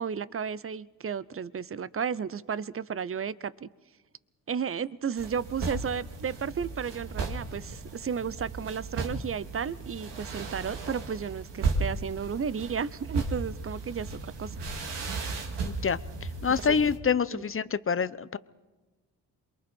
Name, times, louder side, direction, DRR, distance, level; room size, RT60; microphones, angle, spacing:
voice 1, 0.0-3.7 4.5-14.5 16.6-16.7 17.3-17.4, right 7 dB, 30° right, 18 dB, 0.8 m, -33 dB
sound 1, 5.2-17.0, right 3 dB, 70° right, 2.6 m, -35 dB
voice 2, 15.6-16.0 16.4-18.4, left 6 dB, 30° left, 16 dB, 0.8 m, -26 dB
27.5 x 22.5 x 4.5 m, 1.2 s
supercardioid pair, 55°, 43 cm